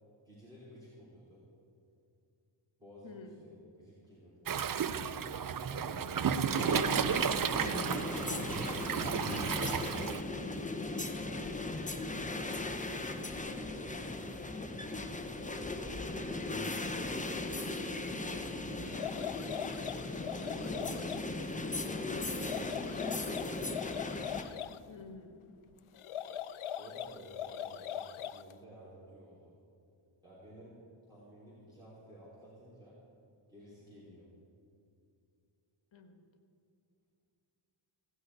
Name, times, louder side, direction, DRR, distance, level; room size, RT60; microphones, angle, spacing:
voice 1, 0.2-1.4 2.8-3.2 3.4-4.9 11.1-12.6 13.6-14.0 14.4-16.4 17.1-19.5 20.3-23.6 26.7-29.5 30.2-30.8 31.1-33.0 33.5-34.3, right 1 dB, 10° right, -9 dB, 3.5 m, -55 dB
voice 2, 3.0-3.4 24.9-25.6 35.9-36.2, left 4 dB, 65° left, 6 dB, 1.5 m, -51 dB
Waves surf, 4.5-10.2, right 7 dB, 45° right, 0.5 m, -33 dB
sound 1, 6.5-24.4, left 2 dB, 15° left, 0.9 m, -37 dB
sound 2, 18.8-21.3 22.3-24.8 26.0-28.5, left 10 dB, 85° left, 0.6 m, -41 dB
16.5 x 6.3 x 9.5 m, 2.5 s
wide cardioid pair, 130°, 48 cm